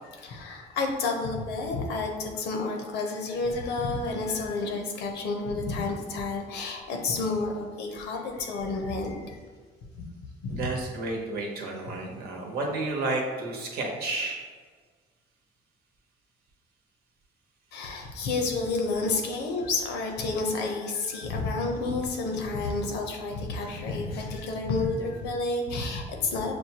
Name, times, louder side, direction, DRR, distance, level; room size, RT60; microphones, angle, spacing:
voice 1, 0.2-9.4 10.4-10.6 17.7-26.5, left 3 dB, 80° left, 2 dB, 0.7 m, -30 dB
voice 2, 10.5-14.5, right 2 dB, 70° right, 0 dB, 0.9 m, -31 dB
6.2 x 2.2 x 2.9 m, 1.5 s
cardioid pair, 110°, 17 cm